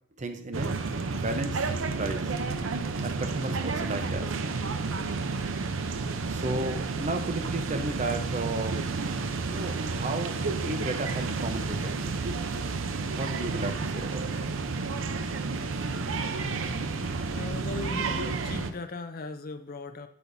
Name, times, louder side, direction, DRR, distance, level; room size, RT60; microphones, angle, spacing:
voice 1, 0.2-0.8 1.1-1.6 1.9-2.3 3.0-4.3 6.3-8.9 9.5-12.2 13.1-14.3, right 2 dB, 40° right, 6 dB, 0.8 m, -33 dB
sound 1, 0.5-18.7, right 4 dB, 80° right, 0.6 m, -31 dB
voice 2, 17.3-20.1, left 3 dB, 45° left, 8 dB, 0.6 m, -38 dB
8.5 x 8.3 x 2.7 m, 0.70 s
head